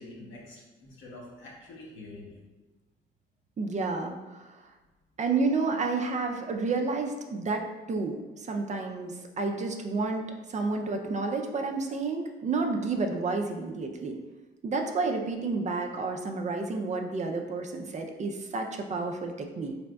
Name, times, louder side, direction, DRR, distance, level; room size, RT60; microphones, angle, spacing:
voice 1, 0.0-2.4, left 2 dB, 70° left, -3 dB, 1.0 m, -46 dB
voice 2, 3.6-4.5 5.2-10.2 10.5-14.2 14.6-19.7, right 3 dB, 35° right, 3 dB, 0.4 m, -30 dB
3.9 x 3.3 x 2.2 m, 1.2 s
cardioid pair, 90°, 20 cm